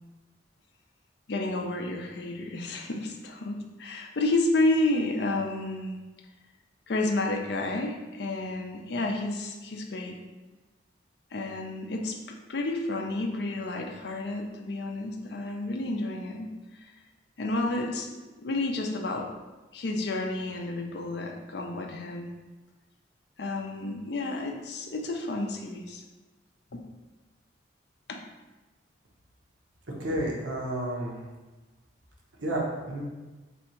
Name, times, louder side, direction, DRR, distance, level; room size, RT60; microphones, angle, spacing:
voice 1, 1.3-6.0 6.9-10.2 11.3-16.5 17.4-18.1 18.4-19.3 19.7-22.3 23.4-26.0 26.7-26.8 28.1-28.2, left 2 dB, 60° left, 2 dB, 0.5 m, -30 dB
voice 2, 30.0-31.2 32.4-33.0, right 1 dB, 80° right, -2 dB, 1.0 m, -30 dB
3.4 x 2.8 x 4.3 m, 1.2 s
head